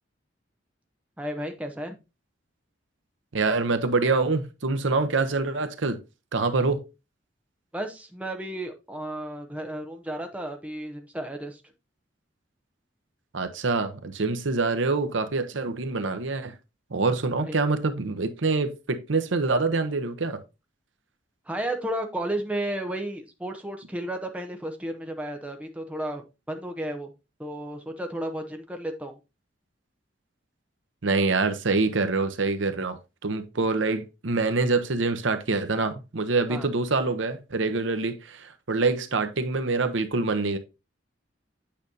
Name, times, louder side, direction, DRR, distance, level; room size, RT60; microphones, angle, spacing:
voice 1, 1.2-2.0 7.7-11.6 17.4-17.5 21.5-27.1 27.4-29.2 36.5-36.7, right 1 dB, 5° right, 0.7 m, -33 dB
voice 2, 3.3-6.0 6.3-6.8 13.3-16.5 16.9-20.4 31.0-40.6, right 3 dB, 75° right, 0.8 m, -25 dB
8.7 x 5.1 x 2.7 m
head